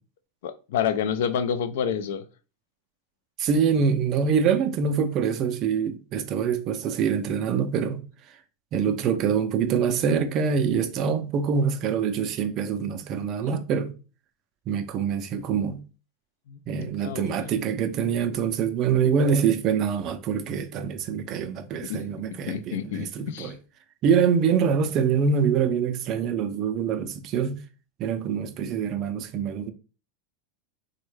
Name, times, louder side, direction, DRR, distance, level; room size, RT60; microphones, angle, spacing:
voice 1, 0.4-2.3 16.5-16.6 17.0-17.8 21.8-22.0 22.5-23.5, left 8 dB, 80° left, 0.3 m, -29 dB
voice 2, 3.4-8.0 8.7-13.9 14.7-15.8 16.7-23.5 24.0-27.6 28.0-29.7, right 6 dB, 35° right, 0.3 m, -25 dB
3.4 x 2.1 x 3.2 m
supercardioid pair, 160°, 0 cm